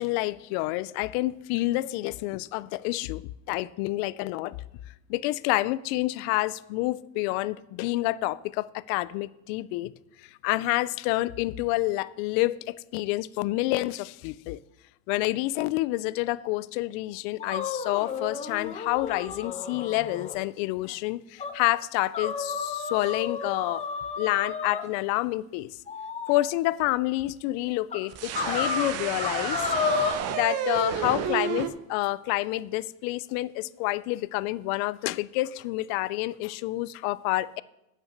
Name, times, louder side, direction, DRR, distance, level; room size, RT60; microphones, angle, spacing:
voice 1, 0.0-3.2 3.5-4.6 5.1-9.9 10.4-14.6 15.1-23.8 24.2-25.7 26.3-29.6 30.3-37.6, left 18 dB, 50° left, 0.4 m, -28 dB
sound 1, 17.4-20.4 20.8-20.9 21.4-21.5 22.1-24.9 25.9-26.4 27.2-27.3 27.9-28.0 28.3-30.1, left 5 dB, 15° left, 0.8 m, -31 dB
sound 2, 28.1-31.7, right 8 dB, 35° right, 0.8 m, -31 dB
9.1 x 5.9 x 6.5 m
supercardioid pair, 135°, 42 cm